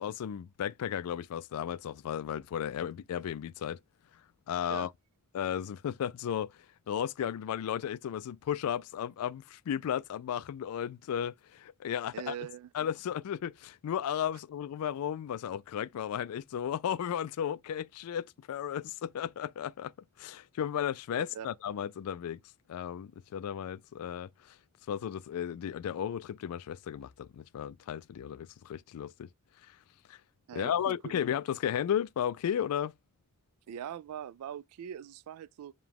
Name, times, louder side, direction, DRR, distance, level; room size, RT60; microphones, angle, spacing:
voice 1, 0.0-3.8 4.5-4.9 5.3-6.5 6.9-12.3 12.7-19.9 20.2-22.4 22.7-24.3 24.9-29.3 30.1-30.2 30.5-32.9, left 9 dB, 80° left, 0.3 m, -34 dB
voice 2, 12.1-12.7 21.2-21.5 30.5-31.1 33.7-35.7, right 9 dB, 85° right, 0.3 m, -42 dB
4.8 x 2.2 x 3.5 m
head